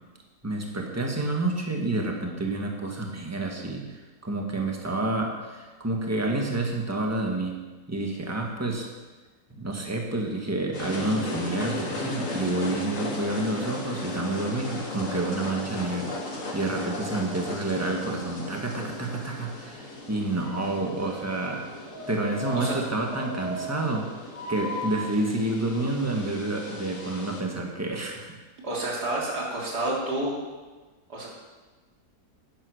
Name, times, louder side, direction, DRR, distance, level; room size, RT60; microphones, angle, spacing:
voice 1, 0.4-7.5 7.9-8.9 9.6-21.7 22.1-24.1 24.5-28.3, right 2 dB, 10° right, 1 dB, 1.6 m, -29 dB
sound 1, 10.7-27.4, left 1 dB, 55° left, 2.3 m, -36 dB
voice 2, 28.6-30.4 31.1-31.3, right 1 dB, 85° right, -4 dB, 3.5 m, -29 dB
10.5 x 10.0 x 6.5 m, 1.3 s
omnidirectional pair, 1.7 m